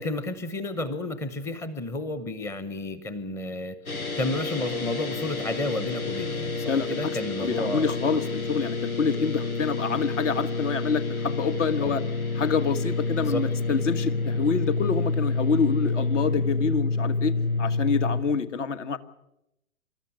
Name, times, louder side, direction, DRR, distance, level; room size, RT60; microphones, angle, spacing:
voice 1, 0.0-7.9 9.9-10.0 11.8-12.0 13.2-13.5, left 2 dB, 5° left, 14 dB, 0.7 m, -32 dB
sound 1, 3.9-18.2, left 3 dB, 85° left, 1.6 m, -28 dB
voice 2, 6.7-7.1 7.4-12.0 12.3-19.0, left 5 dB, 60° left, 12 dB, 1.6 m, -27 dB
26.5 x 13.0 x 9.9 m, 0.87 s
figure-of-eight pair, 110°, 42 cm